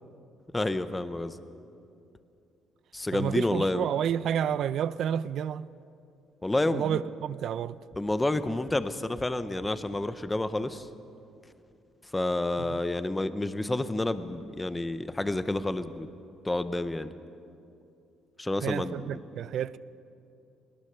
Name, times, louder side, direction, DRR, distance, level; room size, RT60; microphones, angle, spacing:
voice 1, 0.5-1.4 2.9-3.9 6.4-7.0 8.0-10.9 12.1-16.1 16.4-17.1 18.4-19.2, left 2 dB, 10° left, 0.6 m, -29 dB
voice 2, 3.1-5.7 6.7-7.8 12.6-12.8 18.6-19.8, right 9 dB, 50° right, 0.4 m, -30 dB
21.5 x 20.0 x 6.7 m
cardioid pair, 175°, 0 cm